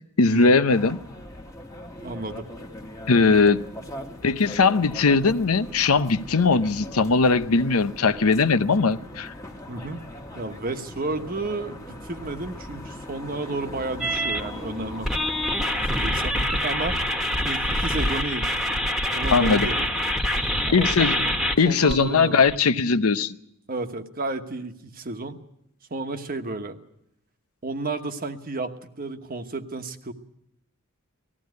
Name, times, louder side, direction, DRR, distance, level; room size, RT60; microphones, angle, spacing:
voice 1, 0.2-1.0 3.1-3.7 4.2-9.3 19.3-19.7 20.7-21.1 21.6-23.4, left 4 dB, 90° left, 0.8 m, -20 dB
sound 1, 0.7-16.1, left 1 dB, 15° left, 1.4 m, -40 dB
voice 2, 2.0-2.5 9.7-10.0 10.3-15.1 15.7-17.0 17.4-18.5 19.1-19.9 20.6-21.3 21.6-22.4 23.7-25.4 25.9-26.8 27.6-30.1, right 2 dB, 40° right, 1.2 m, -32 dB
sound 2, 14.0-14.4 15.0-22.6, equal, ahead, 1.4 m, -26 dB
19.0 x 15.0 x 9.4 m
head